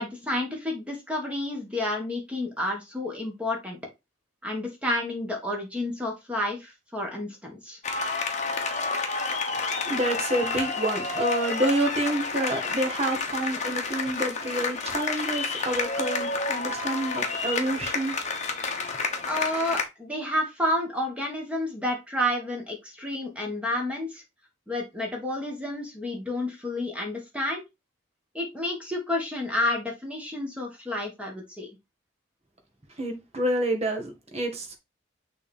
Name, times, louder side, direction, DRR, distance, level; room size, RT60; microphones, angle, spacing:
voice 1, 0.0-3.8 4.4-7.8 19.2-24.2 24.7-27.6 28.3-31.7, left 1 dB, 5° right, 1.6 m, -30 dB
sound 1, 7.8-19.8, left 4 dB, 35° left, 1.1 m, -30 dB
voice 2, 9.8-18.1 33.0-34.8, right 1 dB, 30° right, 1.6 m, -28 dB
6.3 x 3.5 x 4.2 m
head